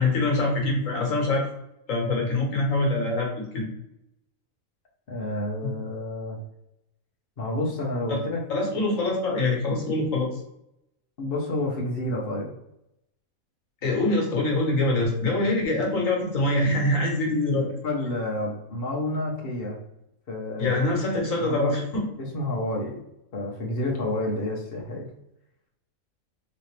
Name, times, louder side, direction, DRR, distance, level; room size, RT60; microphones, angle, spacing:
voice 1, 0.0-1.5 1.9-3.7 5.6-5.7 8.1-8.2 8.5-10.4 13.8-17.7 20.6-22.1, left 2 dB, 60° left, -1 dB, 1.5 m, -24 dB
voice 2, 5.1-6.4 7.4-8.5 11.2-12.5 17.8-19.8 20.3-20.8 21.4-21.8 22.3-23.0 23.3-25.0, left 1 dB, 45° left, -2 dB, 0.9 m, -29 dB
4.1 x 3.0 x 3.2 m, 0.83 s
omnidirectional pair, 1.6 m